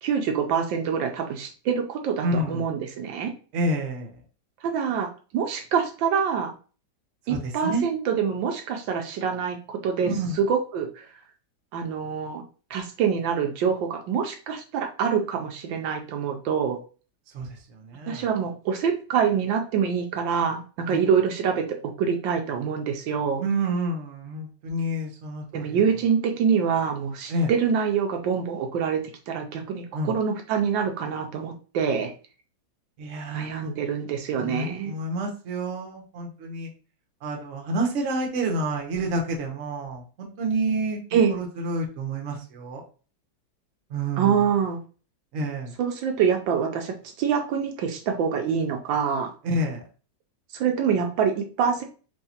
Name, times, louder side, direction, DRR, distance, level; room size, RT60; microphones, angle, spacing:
voice 1, 0.0-3.3 4.6-6.5 7.3-10.1 10.4-11.1 11.7-12.4 12.7-16.8 18.1-21.7 22.0-23.4 25.5-32.1 33.3-34.9 41.1-41.3 44.2-44.8 45.8-49.3 50.5-51.8, right 7 dB, 75° right, 3 dB, 1.3 m, -25 dB
voice 2, 2.2-2.7 3.5-4.2 7.3-7.9 10.0-10.4 17.3-18.3 20.9-21.0 23.4-25.8 27.3-27.5 29.9-30.2 33.0-33.7 34.4-36.7 37.2-41.0 41.3-42.8 43.9-44.4 45.3-45.7 49.4-49.8, right 1 dB, 50° right, 0 dB, 1.0 m, -29 dB
4.6 x 2.8 x 2.8 m, 0.37 s
omnidirectional pair, 2.1 m